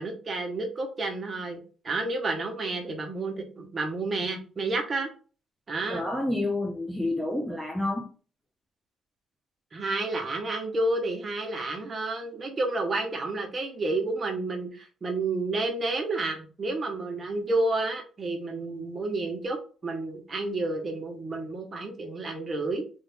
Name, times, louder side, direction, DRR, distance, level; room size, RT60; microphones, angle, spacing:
voice 1, 0.0-5.1 5.7-6.0 9.7-22.9, right 2 dB, 30° right, 1.0 m, -30 dB
voice 2, 5.9-8.1, left 1 dB, 5° left, 0.5 m, -29 dB
3.7 x 2.5 x 3.4 m
cardioid pair, 155°, 0 cm